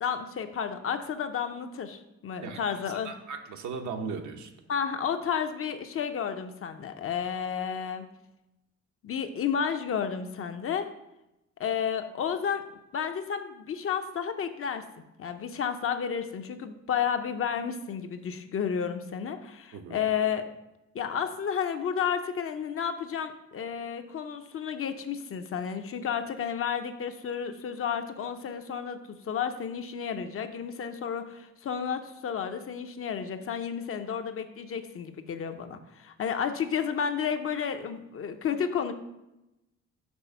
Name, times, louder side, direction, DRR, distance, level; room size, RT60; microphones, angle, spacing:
voice 1, 0.0-3.1 4.7-8.0 9.0-10.9 11.6-12.6 12.9-14.8 15.2-20.4 20.9-38.9, left 7 dB, 45° left, 8 dB, 0.6 m, -31 dB
voice 2, 3.0-4.5 19.7-20.0, right 5 dB, 70° right, 5 dB, 0.8 m, -37 dB
6.2 x 3.3 x 5.6 m, 0.91 s
cardioid pair, 90°, 30 cm